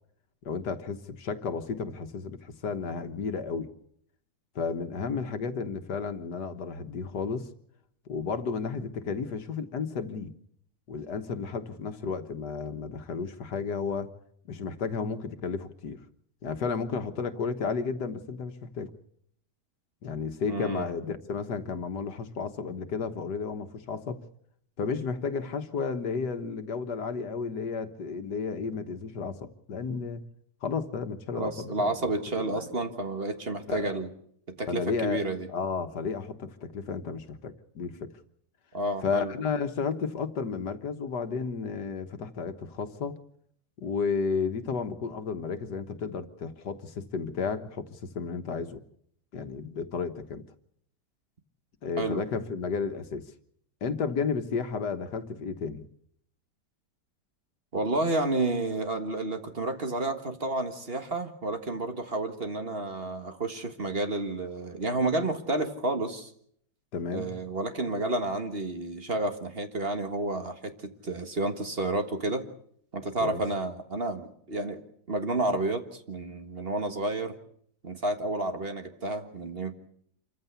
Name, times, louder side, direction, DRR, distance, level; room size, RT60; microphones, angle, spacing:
voice 1, 0.5-3.7 4.6-7.5 8.1-10.3 10.9-14.1 14.5-16.0 16.4-18.9 20.0-24.2 24.8-30.3 30.6-31.9 32.4-32.7 33.7-33.9 34.7-35.2 35.5-38.1 39.0-43.2 43.8-48.8 49.3-50.4 51.8-53.2 53.8-55.8 66.9-67.3 73.2-73.4, left 5 dB, 80° left, 8 dB, 1.9 m, -32 dB
voice 2, 20.5-20.9 31.3-34.1 34.5-35.5 38.7-39.3 52.0-52.2 57.7-66.3 67.1-72.4 72.9-74.8 75.1-77.4 77.8-79.8, right 2 dB, 35° right, 7 dB, 1.8 m, -30 dB
27.0 x 15.0 x 8.2 m, 0.69 s
omnidirectional pair, 1.8 m